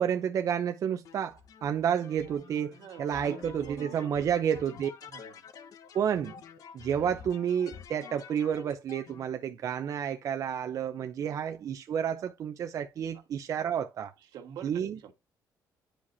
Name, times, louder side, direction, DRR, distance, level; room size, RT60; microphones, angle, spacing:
voice 1, 0.0-2.7 3.0-4.9 5.9-6.3 6.7-14.1 14.6-15.0, right 8 dB, 55° right, 0.7 m, -30 dB
sound 1, 1.0-9.2, left 7 dB, 60° left, 1.2 m, -49 dB
voice 2, 2.7-4.6 5.0-5.5 13.1-13.2 14.2-15.1, right 8 dB, 80° right, 1.7 m, -46 dB
10.0 x 5.0 x 2.7 m
cardioid pair, 120°, 7 cm